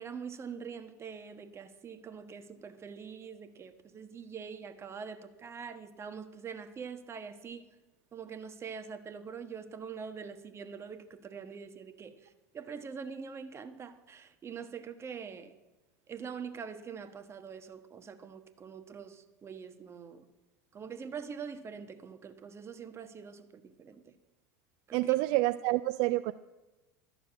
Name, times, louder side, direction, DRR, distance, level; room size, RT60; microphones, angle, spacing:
voice 1, 0.0-7.6 8.1-15.6 16.1-20.2 20.7-24.1 24.9-25.1, right 6 dB, 30° right, 9 dB, 1.2 m, -44 dB
voice 2, 24.9-26.3, right 18 dB, 60° right, 12 dB, 0.4 m, -28 dB
12.0 x 6.9 x 8.8 m, 1.1 s
hypercardioid pair, 80°, 9 cm